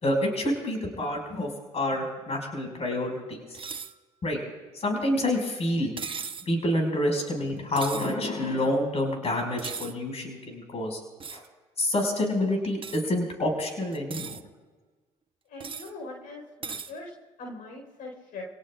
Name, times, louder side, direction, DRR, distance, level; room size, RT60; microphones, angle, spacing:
voice 1, 0.0-3.4 4.2-4.4 4.7-5.9 6.5-11.0 11.3-11.4 11.8-14.4, left 1 dB, 45° left, 2 dB, 5.6 m, -28 dB
sound 1, 3.5-3.9 6.0-6.5 7.8-8.1 9.6-9.9 11.2-11.5 12.8-13.0 13.9-14.4 15.6-15.9 16.6-16.9, right 5 dB, 35° right, 1.0 m, -37 dB
voice 2, 15.5-17.1 17.4-18.4, left 2 dB, 75° left, 0 dB, 4.4 m, -41 dB
29.5 x 18.0 x 2.5 m, 1.3 s
supercardioid pair, 65°, 15 cm